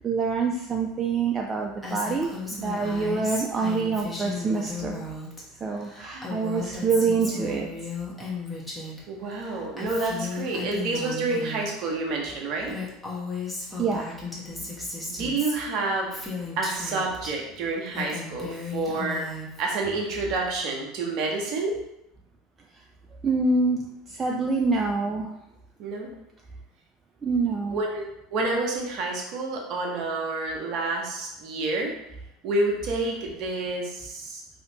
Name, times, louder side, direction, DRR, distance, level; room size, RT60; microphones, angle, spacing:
voice 1, 0.0-5.0 5.6-7.9 13.8-14.2 22.7-22.8 23.2-25.3 27.2-27.8, right 4 dB, 25° right, 1 dB, 0.3 m, -26 dB
Female speech woman speaking, 1.8-5.4 5.7-9.0 9.3-11.7 12.3-12.4 12.6-17.3 17.7-19.7, left 3 dB, 5° left, 1.0 m, -35 dB
voice 2, 9.1-12.7 15.1-16.2 16.6-19.3 19.6-21.7 25.8-26.1 27.7-32.0 32.4-34.4, right 2 dB, 50° right, 0 dB, 0.8 m, -29 dB
4.1 x 2.7 x 2.8 m, 0.84 s
figure-of-eight pair, 70°, 0 cm